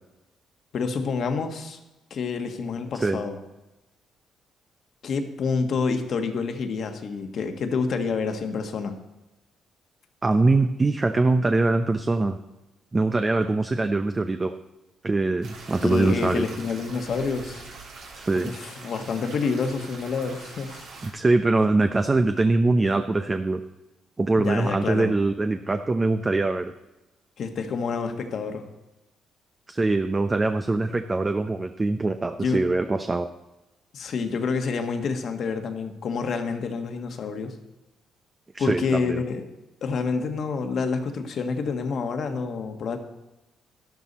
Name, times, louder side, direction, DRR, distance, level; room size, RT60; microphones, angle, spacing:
voice 1, 0.7-1.8 2.1-3.4 5.0-9.0 15.8-17.7 18.3-20.9 24.4-25.1 27.4-28.6 32.4-32.6 33.9-37.6 38.6-39.4 39.8-43.0, left 5 dB, 60° left, 6 dB, 1.5 m, -28 dB
voice 2, 10.2-12.4 12.9-14.5 15.0-16.4 18.1-18.5 21.0-23.6 24.2-26.7 29.7-33.3 38.5-39.2, right 2 dB, 25° right, 7 dB, 0.6 m, -23 dB
sound 1, 15.4-21.1, right 4 dB, 75° right, 2.9 m, -43 dB
12.0 x 12.0 x 4.2 m, 1.0 s
cardioid pair, 90°, 0 cm